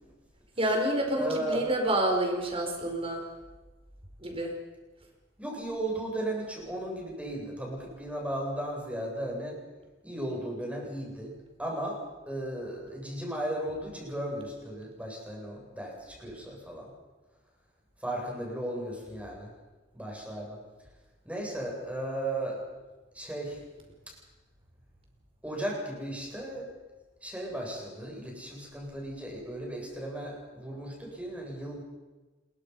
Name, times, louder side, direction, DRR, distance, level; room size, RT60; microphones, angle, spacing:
voice 1, 0.6-3.2 4.2-4.5, right 1 dB, 30° right, 2 dB, 5.0 m, -28 dB
voice 2, 1.2-1.6 5.4-9.6 10.0-11.3 11.6-12.0 12.3-16.9 18.0-19.5 19.9-20.6 21.2-22.6 23.1-23.6 25.4-26.7 27.2-31.8, right 1 dB, 5° right, -1 dB, 7.8 m, -35 dB
27.5 x 22.5 x 5.6 m, 1.2 s
head